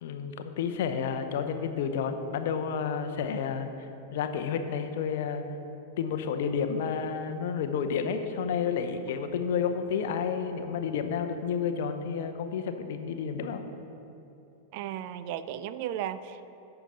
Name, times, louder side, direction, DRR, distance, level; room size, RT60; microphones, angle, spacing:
voice 1, 0.0-5.4 6.0-13.6, left 6 dB, 55° left, 7 dB, 0.7 m, -31 dB
voice 2, 14.7-16.5, right 10 dB, 50° right, 13 dB, 0.4 m, -35 dB
15.0 x 5.8 x 4.0 m, 2.9 s
figure-of-eight pair, 90°, 0 cm